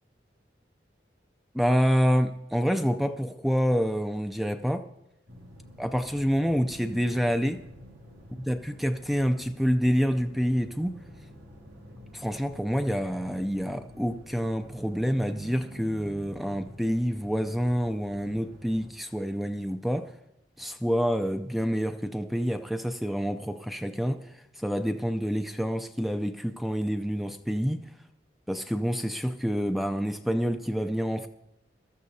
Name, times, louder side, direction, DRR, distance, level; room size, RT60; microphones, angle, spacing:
voice 1, 1.5-4.9 5.8-7.6 8.5-11.0 12.1-20.2 20.6-27.9 28.5-31.3, equal, ahead, 0.4 m, -27 dB
sound 1, 5.3-18.9, equal, 75° right, 2.0 m, -48 dB
21.0 x 13.5 x 2.7 m
head